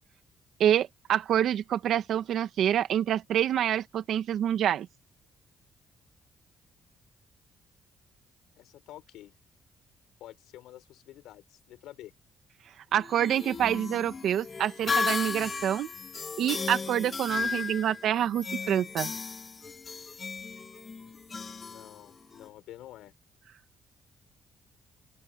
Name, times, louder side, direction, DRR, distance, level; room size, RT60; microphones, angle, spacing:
voice 1, 0.6-4.9 12.9-15.9 16.4-19.1, right 10 dB, 75° right, 1.7 m, -27 dB
voice 2, 8.6-9.4 10.2-12.1 21.0-23.1, left 14 dB, 90° left, 5.9 m, -49 dB
sound 1, 12.9-22.5, left 4 dB, 35° left, 2.5 m, -35 dB
open air
cardioid pair, 90°, 0 cm